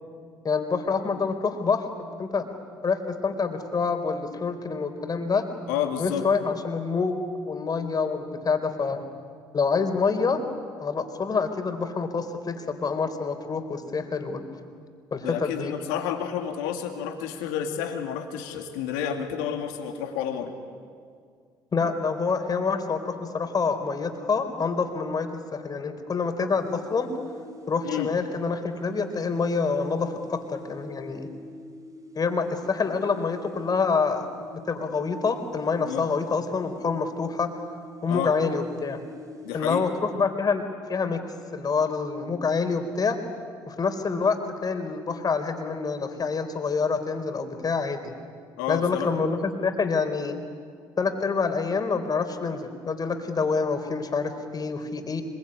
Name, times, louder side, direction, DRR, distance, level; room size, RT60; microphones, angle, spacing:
voice 1, 0.4-1.8 2.2-2.4 2.8-5.4 6.0-9.0 9.5-10.4 10.8-14.5 15.1-15.7 21.7-27.1 27.7-31.3 32.2-37.5 38.0-39.0 39.5-40.6 40.9-41.2 41.5-43.2 43.7-44.4 44.6-48.1 48.7-50.4 51.0-55.2, left 5 dB, 40° left, 7 dB, 4.0 m, -27 dB
voice 2, 5.7-6.3 15.2-20.5 27.8-28.1 35.9-36.1 38.1-38.3 39.4-39.8 48.6-49.1, left 9 dB, 80° left, 5 dB, 2.7 m, -30 dB
sound 1, 26.5-40.0, equal, 30° right, 5.3 m, -46 dB
25.0 x 22.5 x 9.9 m, 2.1 s
hypercardioid pair, 60°, 10 cm